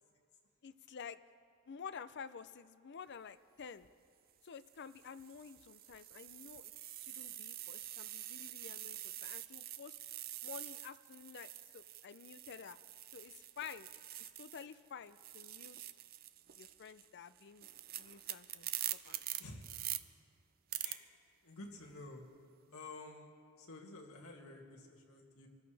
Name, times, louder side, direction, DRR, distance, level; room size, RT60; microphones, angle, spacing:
voice 1, 0.6-1.2 1.7-3.9 4.4-6.7 7.0-9.9 10.4-12.8 13.1-13.9 14.2-15.8 16.6-17.7 18.0-19.2, left 6 dB, 55° left, 14 dB, 0.5 m, -51 dB
sound 1, 3.6-3.9 4.6-14.8 15.1-20.0 20.7-20.9, right 13 dB, 45° right, 0.5 m, -46 dB
voice 2, 20.8-21.2 21.4-22.2 22.7-25.5, left 2 dB, 90° left, 0 dB, 2.2 m, -51 dB
26.0 x 14.0 x 3.4 m, 2.4 s
head